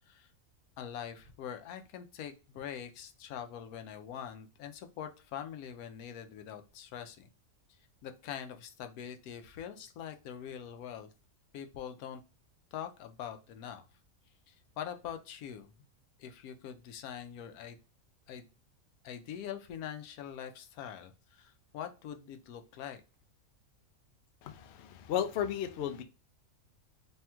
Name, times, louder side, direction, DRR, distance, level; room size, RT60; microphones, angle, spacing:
voice 1, 0.8-7.3 8.0-11.1 11.5-12.2 12.7-13.8 14.5-15.7 16.2-17.8 18.3-18.5 19.0-23.0, left 9 dB, 85° left, 1.1 m, -43 dB
voice 2, 24.4-26.0, left 9 dB, 65° left, 0.7 m, -34 dB
3.4 x 2.3 x 4.2 m
omnidirectional pair, 1.5 m